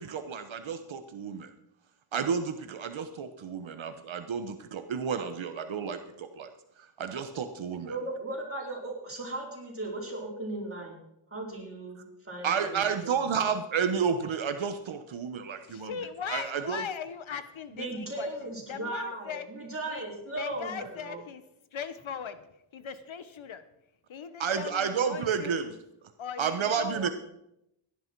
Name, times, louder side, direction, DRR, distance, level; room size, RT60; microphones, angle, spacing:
voice 1, 0.0-1.5 2.1-6.5 6.8-8.0 12.4-16.0 16.3-16.8 24.4-25.8 26.4-27.1, right 6 dB, 70° right, 8 dB, 1.1 m, -31 dB
voice 2, 7.9-11.0 11.3-13.3 17.7-21.2, right 2 dB, 25° right, -2 dB, 4.6 m, -37 dB
voice 3, 15.7-18.3 18.7-19.5 19.9-20.0 20.3-21.4 21.7-22.4 22.7-23.6 24.1-25.6 26.2-27.1, left 7 dB, 70° left, 12 dB, 1.1 m, -39 dB
17.0 x 11.0 x 4.6 m, 0.82 s
wide cardioid pair, 125°, 49 cm